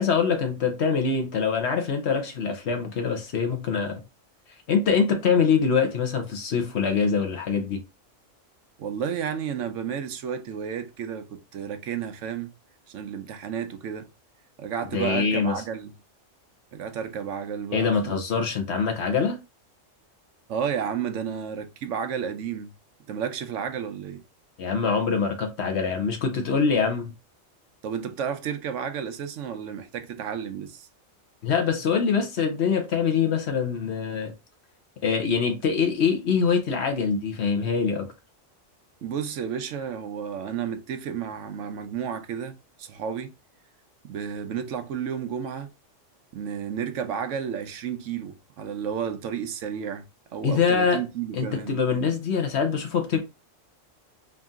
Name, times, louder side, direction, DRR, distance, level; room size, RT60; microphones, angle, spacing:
voice 1, 0.0-4.0 4.7-7.8 14.9-15.6 17.7-19.4 24.6-27.1 31.4-34.3 35.0-38.1 50.4-51.0 51.3-53.2, left 6 dB, 60° left, 1.1 m, -24 dB
voice 2, 8.8-12.5 12.9-14.1 14.6-15.9 16.7-18.2 20.5-22.7 23.1-24.2 27.8-30.9 39.0-43.3 44.0-45.7 46.3-50.1 50.3-51.7, right 7 dB, 75° right, 1.0 m, -32 dB
3.7 x 2.7 x 3.6 m
omnidirectional pair, 1.3 m